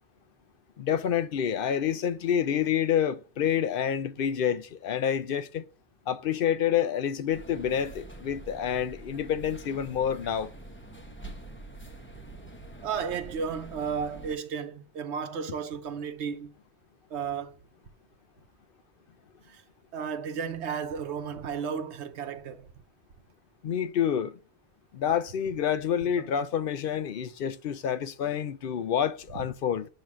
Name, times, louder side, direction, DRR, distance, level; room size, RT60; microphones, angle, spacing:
voice 1, 0.8-5.7 6.1-10.5 23.6-24.3 24.9-29.9, left 9 dB, 60° left, 0.7 m, -28 dB
sound 1, 7.3-14.3, right 2 dB, 10° left, 1.0 m, -45 dB
voice 2, 12.8-16.5 17.1-17.5 19.5-19.6 19.9-22.7 26.2-26.3, right 6 dB, 90° right, 1.1 m, -33 dB
9.0 x 3.0 x 6.1 m
omnidirectional pair, 1.1 m